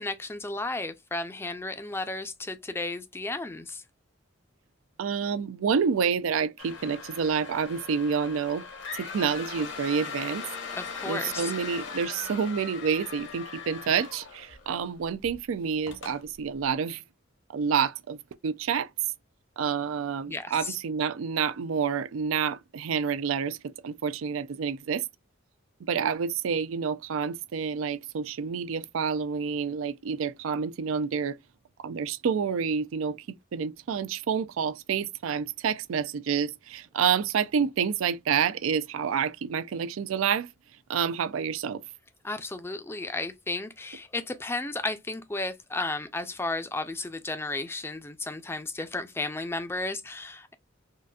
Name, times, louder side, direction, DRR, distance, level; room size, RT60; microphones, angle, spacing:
voice 1, 0.0-3.8 10.7-11.5 20.3-20.8 42.2-50.5, left 2 dB, 10° left, 0.4 m, -33 dB
voice 2, 5.0-8.6 8.9-10.4 11.1-17.0 17.5-18.9 19.6-25.0 25.9-31.4 31.8-33.2 33.5-40.5 40.9-41.8, right 6 dB, 90° right, 0.4 m, -28 dB
sound 1, 6.6-14.8 15.2-15.4 15.9-16.2, left 5 dB, 60° left, 0.9 m, -39 dB
3.8 x 2.4 x 2.2 m
head